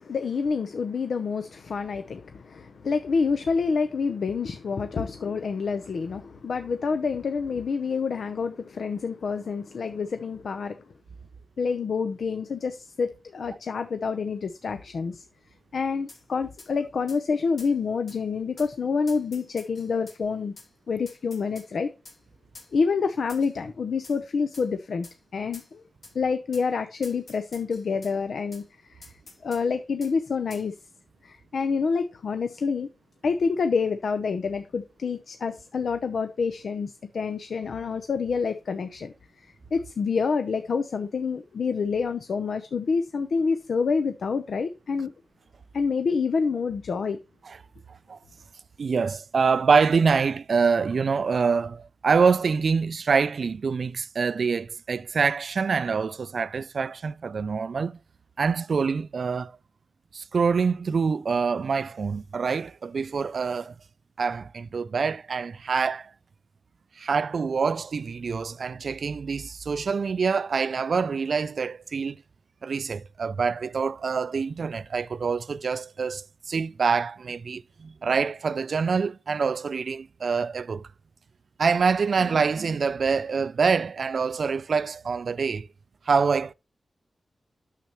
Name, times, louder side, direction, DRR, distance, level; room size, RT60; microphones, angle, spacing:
voice 1, 0.0-10.8 11.6-15.2 15.7-20.5 20.9-21.9 22.7-25.1 25.3-25.8 26.1-28.6 28.9-29.1 29.4-30.7 31.2-32.9 33.2-45.1 45.7-47.2, left 5 dB, 80° left, 0.6 m, -27 dB
sound 1, 16.1-16.2 16.6-16.7 17.1-17.2 17.6-17.7 18.1-18.2 18.6-18.7 19.1-20.2 20.6-20.7 21.1-21.7 22.0-22.2 22.5-22.7 23.3-23.6 24.0-24.2 24.5-24.7 25.0-25.2 25.5-25.7 26.0-26.1 26.5-26.7 27.0-28.1 28.5-28.6 29.0-29.6 30.0-30.1 30.5-30.7, left 3 dB, 60° left, 2.3 m, -48 dB
voice 2, 47.9-48.2 48.8-58.0 58.4-59.6 60.1-63.7 64.2-66.1 67.0-72.2 72.6-80.9 81.6-85.7 86.1-86.5, right 5 dB, 65° right, 0.3 m, -25 dB
9.2 x 6.7 x 3.0 m
wide cardioid pair, 115°, 0 cm